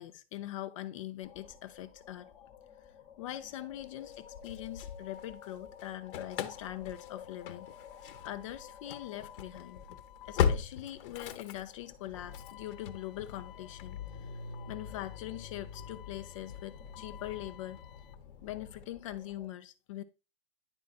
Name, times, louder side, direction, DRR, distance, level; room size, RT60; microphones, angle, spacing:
voice 1, 0.0-2.3 3.2-7.7 8.2-9.8 10.3-14.0 14.7-17.8 18.4-20.0, left 13 dB, 30° left, 0.4 m, -42 dB
sound 1, 1.2-19.5, left 8 dB, 15° left, 0.8 m, -53 dB
Engine starting / Slam, 4.1-5.5 5.8-18.8, left 7 dB, 55° left, 0.9 m, -39 dB
10.5 x 4.1 x 2.3 m
hypercardioid pair, 155°, 32 cm